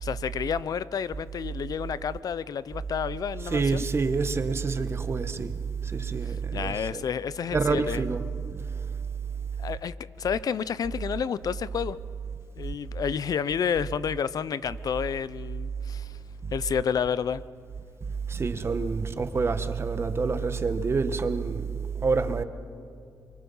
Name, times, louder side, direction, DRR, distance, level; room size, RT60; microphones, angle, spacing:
voice 1, 0.0-3.9 6.3-8.0 9.6-12.0 12.6-16.2 16.5-17.4, left 7 dB, 70° left, 0.7 m, -30 dB
voice 2, 3.5-5.5 5.8-7.0 7.5-8.2 16.4-16.5 18.3-21.7 22.0-22.4, right 4 dB, 40° right, 1.3 m, -27 dB
28.0 x 24.0 x 5.6 m
cardioid pair, 100°, 7 cm